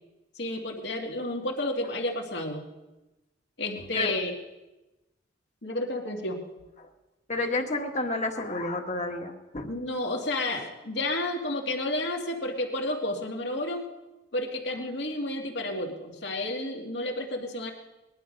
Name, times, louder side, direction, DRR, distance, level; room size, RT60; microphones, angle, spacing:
voice 1, 0.4-2.7 3.6-4.3 5.6-6.4 9.6-13.9 14.3-17.7, left 1 dB, 65° left, 1 dB, 2.1 m, -31 dB
voice 2, 7.3-9.7, left 2 dB, 40° left, 4 dB, 1.5 m, -30 dB
20.5 x 11.5 x 5.3 m, 1.1 s
head